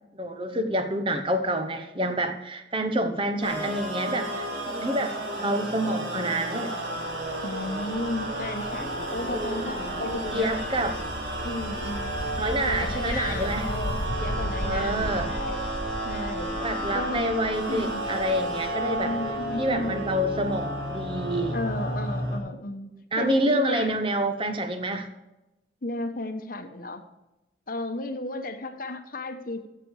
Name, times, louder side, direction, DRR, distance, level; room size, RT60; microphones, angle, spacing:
voice 1, 0.2-5.1 5.4-6.7 9.3-9.7 10.0-11.0 12.4-13.7 14.6-15.3 16.5-19.1 19.6-21.6 23.1-25.1, right 1 dB, 30° right, 7 dB, 1.0 m, -28 dB
sound 1, 3.4-22.4, right 1 dB, 80° right, 3.6 m, -32 dB
sound 2, 6.9-20.5, left 1 dB, 75° left, 1.2 m, -37 dB
voice 2, 7.4-10.5 11.4-12.1 12.7-15.6 16.0-16.5 16.9-17.3 17.7-18.1 19.0-20.1 21.5-22.9 23.2-23.9 25.8-27.0 27.7-29.7, left 2 dB, 50° left, 8 dB, 1.0 m, -34 dB
14.5 x 6.7 x 4.8 m, 0.98 s
head